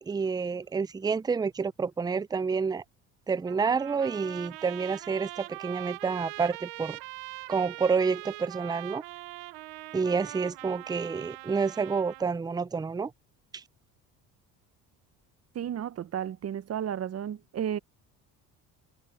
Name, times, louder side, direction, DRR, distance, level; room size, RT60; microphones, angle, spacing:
voice 1, 0.0-2.8 3.3-7.0 7.5-9.0 9.9-13.1 13.5-13.6, right 5 dB, 10° right, 0.5 m, -29 dB
Trumpet, 3.5-12.4, right 23 dB, 90° right, 0.8 m, -42 dB
voice 2, 15.5-17.8, right 9 dB, 40° right, 0.9 m, -33 dB
supercardioid pair, 85°, 36 cm